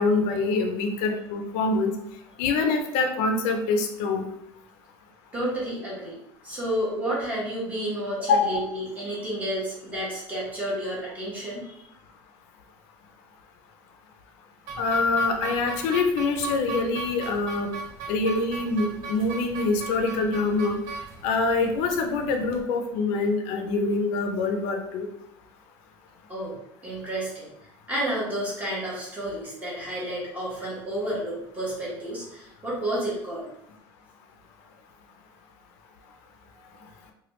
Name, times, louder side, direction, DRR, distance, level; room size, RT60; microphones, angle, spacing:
voice 1, 0.0-1.9 2.4-4.3 8.3-8.6 14.8-17.7 18.1-20.8 21.2-25.1, left 3 dB, 70° left, 4 dB, 0.5 m, -25 dB
voice 2, 5.3-6.2 6.4-11.8 26.3-26.6 26.8-27.5 27.9-33.5, right 1 dB, 15° right, -6 dB, 1.1 m, -31 dB
sound 1, 14.7-22.6, right 4 dB, 65° right, 0.5 m, -38 dB
3.0 x 2.2 x 3.0 m, 0.79 s
cardioid pair, 170°, 9 cm